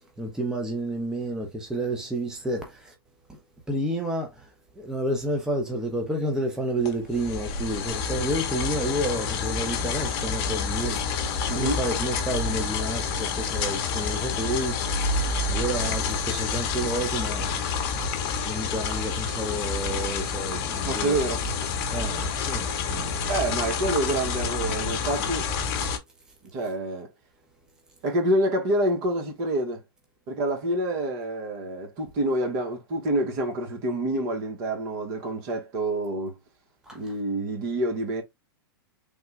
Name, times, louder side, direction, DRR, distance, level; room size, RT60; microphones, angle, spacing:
voice 1, 0.2-2.9 3.3-3.4 3.7-11.0 11.6-17.6 18.3-21.2 21.9-23.3 36.8-37.0, right 1 dB, 5° right, 0.8 m, -30 dB
sound 1, 6.8-26.0, left 5 dB, 45° left, 0.9 m, -28 dB
voice 2, 11.5-11.8 20.8-21.4 23.3-25.5 26.5-27.1 28.0-29.8 30.3-36.3 36.9-38.2, right 1 dB, 45° right, 1.1 m, -27 dB
3.6 x 2.2 x 3.1 m
hypercardioid pair, 120°, 13 cm